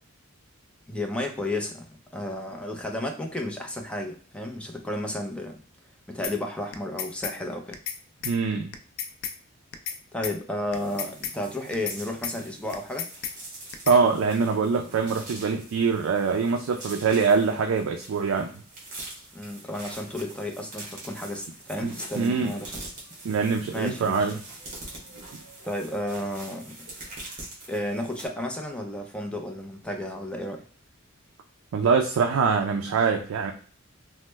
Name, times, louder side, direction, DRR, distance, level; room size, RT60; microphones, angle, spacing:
voice 1, 0.9-1.9 2.1-5.6 6.1-7.8 10.1-13.1 19.3-22.8 23.7-24.3 25.6-26.7 27.7-30.6, left 1 dB, 5° left, 2 dB, 0.4 m, -32 dB
sound 1, 6.2-6.4 6.7-7.4 7.7-8.4 8.7-9.4 9.7-10.0 10.2-10.4 10.7-11.4 11.7-12.0 12.2-12.4 12.7-13.4 13.7-14.0, left 8 dB, 70° left, 0.4 m, -33 dB
voice 2, 8.2-8.8 13.9-18.5 21.8-22.5 23.2-24.4 31.7-33.5, right 5 dB, 70° right, 4 dB, 0.3 m, -24 dB
sound 2, 10.7-28.3, right 2 dB, 40° right, 1.1 m, -44 dB
3.1 x 2.1 x 3.2 m, 0.43 s
head